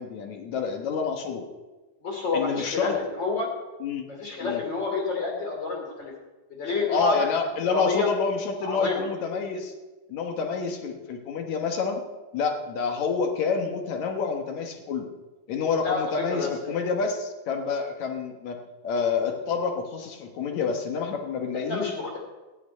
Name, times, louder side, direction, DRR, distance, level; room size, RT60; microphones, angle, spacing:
voice 1, 0.0-1.4 2.3-3.0 3.8-4.1 4.4-4.6 6.9-9.7 10.1-12.0 12.3-15.1 15.5-21.8, left 5 dB, 60° left, 3 dB, 2.3 m, -28 dB
voice 2, 2.0-3.5 4.1-6.1 6.5-7.3 7.7-8.1 8.6-9.1 15.8-16.8 21.6-22.2, left 3 dB, 35° left, 0 dB, 2.9 m, -29 dB
14.0 x 5.9 x 9.4 m, 1.2 s
omnidirectional pair, 4.2 m